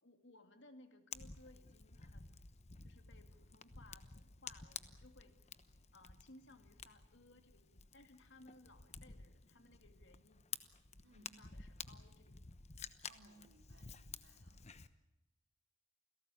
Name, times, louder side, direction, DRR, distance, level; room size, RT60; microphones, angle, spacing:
voice 1, 0.0-2.4 2.8-5.3 5.9-10.4 11.1-12.5, left 2 dB, 60° left, 7 dB, 2.5 m, -63 dB
Fire, 1.1-14.9, left 6 dB, 35° left, 1.0 m, -52 dB
voice 2, 13.1-14.6, right 2 dB, 70° right, 4 dB, 3.8 m, -65 dB
29.0 x 17.5 x 8.5 m, 0.94 s
head